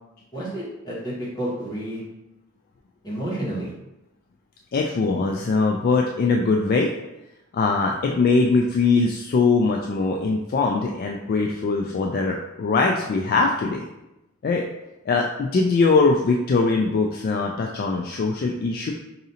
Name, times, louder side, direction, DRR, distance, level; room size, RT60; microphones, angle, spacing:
voice 1, 0.3-2.0 3.0-3.7, right 1 dB, 20° left, -8 dB, 1.3 m, -30 dB
voice 2, 4.7-6.9 7.5-13.8 14.4-14.7 15.1-18.9, left 4 dB, 45° left, 1 dB, 0.3 m, -21 dB
4.9 x 2.7 x 2.7 m, 0.94 s
head